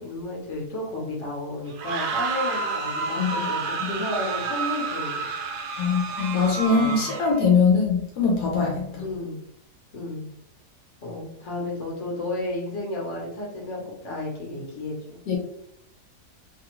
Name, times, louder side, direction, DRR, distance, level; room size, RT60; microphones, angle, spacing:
voice 1, 0.0-5.3 6.7-7.0 9.0-9.4 9.9-10.3 11.0-15.2, left 2 dB, 50° left, -3 dB, 1.3 m, -32 dB
sound 1, 1.7-7.4, right 4 dB, 80° right, 1.1 m, -30 dB
voice 2, 5.8-9.0 15.3-15.4, left 4 dB, 80° left, -2 dB, 1.3 m, -22 dB
3.2 x 2.3 x 3.0 m, 0.73 s
omnidirectional pair, 1.7 m